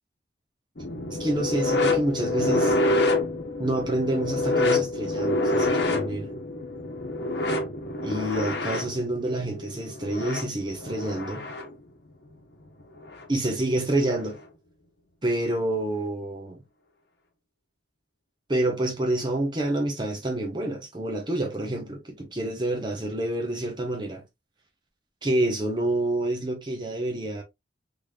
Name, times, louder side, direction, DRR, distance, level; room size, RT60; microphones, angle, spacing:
sound 1, 0.8-11.7 13.0-13.2 14.2-14.3, left 2 dB, 70° left, 1.0 m, -27 dB
voice 1, 1.2-2.8 3.6-6.3 8.0-11.5 13.3-14.4 15.2-16.6 18.5-24.2 25.2-27.4, right 1 dB, 25° right, 0.9 m, -28 dB
4.0 x 3.3 x 2.3 m
head